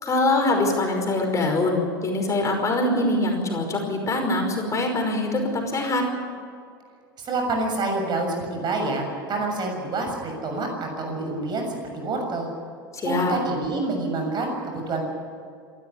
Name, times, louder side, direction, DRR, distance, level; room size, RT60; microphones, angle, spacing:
voice 1, 0.0-6.1 12.9-13.3, left 2 dB, 25° left, 3 dB, 5.3 m, -23 dB
voice 2, 7.2-11.7 11.9-12.5 13.0-15.0, right 3 dB, 40° right, 3 dB, 6.9 m, -27 dB
27.5 x 13.0 x 9.9 m, 2.3 s
figure-of-eight pair, 75°, 12 cm